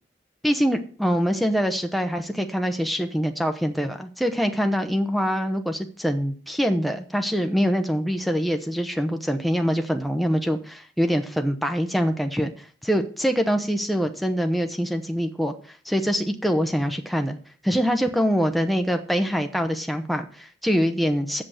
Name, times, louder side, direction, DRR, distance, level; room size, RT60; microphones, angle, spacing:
voice 1, 0.4-17.4 17.6-21.4, equal, ahead, 5 dB, 0.8 m, -24 dB
7.7 x 7.5 x 6.4 m, 0.43 s
head